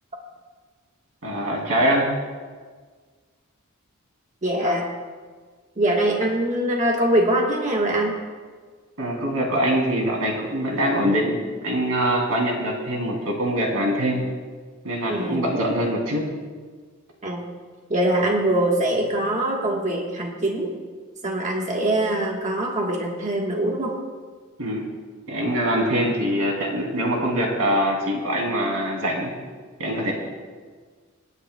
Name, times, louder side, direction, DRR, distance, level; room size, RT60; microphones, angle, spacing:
voice 1, 1.2-2.1 9.0-11.4 11.6-14.2 14.8-16.3 24.6-24.9 25.3-29.3 29.8-30.1, equal, 80° right, 0 dB, 2.7 m, -23 dB
voice 2, 4.4-4.9 5.8-8.1 15.1-15.4 17.2-17.4 17.9-20.7 21.2-24.0, right 1 dB, 35° right, -1 dB, 1.3 m, -23 dB
27.5 x 9.8 x 2.2 m, 1.5 s
head